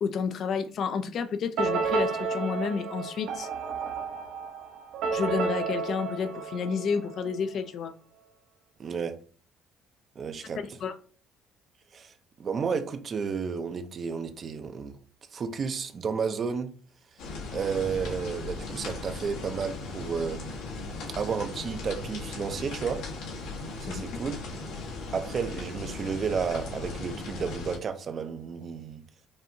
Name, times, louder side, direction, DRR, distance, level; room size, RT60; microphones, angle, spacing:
voice 1, 0.0-3.5 5.1-7.9 10.8-10.9 23.9-24.0, left 6 dB, 50° left, 0.4 m, -30 dB
sound 1, 1.6-7.3, right 5 dB, 70° right, 0.8 m, -31 dB
voice 2, 8.8-9.2 10.2-10.6 11.9-12.1 12.4-15.0 15.3-16.7 17.5-20.4 21.2-23.1 23.8-24.4 25.1-29.0, right 6 dB, 35° right, 0.5 m, -32 dB
sound 2, 17.2-27.8, left 3 dB, 90° left, 1.3 m, -37 dB
5.2 x 2.7 x 2.6 m
cardioid pair, 140°, 0 cm